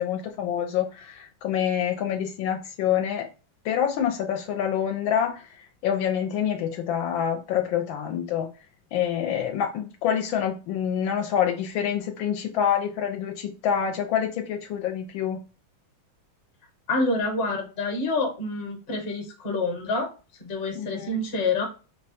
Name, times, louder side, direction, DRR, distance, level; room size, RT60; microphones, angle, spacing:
voice 1, 0.0-3.3 3.6-8.5 8.9-15.4 20.7-21.2, left 9 dB, 75° left, 1.3 m, -27 dB
voice 2, 16.9-20.1 20.4-21.6, left 2 dB, 40° left, 1.1 m, -27 dB
4.9 x 2.2 x 4.1 m
omnidirectional pair, 2.2 m